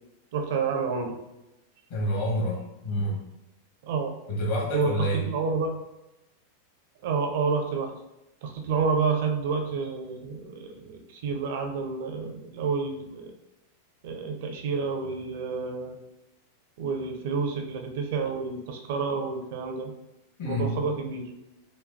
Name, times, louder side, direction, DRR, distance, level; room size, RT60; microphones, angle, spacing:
voice 1, 0.3-1.1 3.9-4.1 4.7-5.8 7.0-7.9 8.4-10.6 10.9-13.3 14.0-16.0 16.8-19.9 20.4-21.3, right 5 dB, 55° right, 4 dB, 0.5 m, -29 dB
voice 2, 1.9-3.2 4.3-5.2 20.4-20.7, equal, 50° left, -3 dB, 1.4 m, -28 dB
5.1 x 2.2 x 2.6 m, 0.94 s
figure-of-eight pair, 90°, 0 cm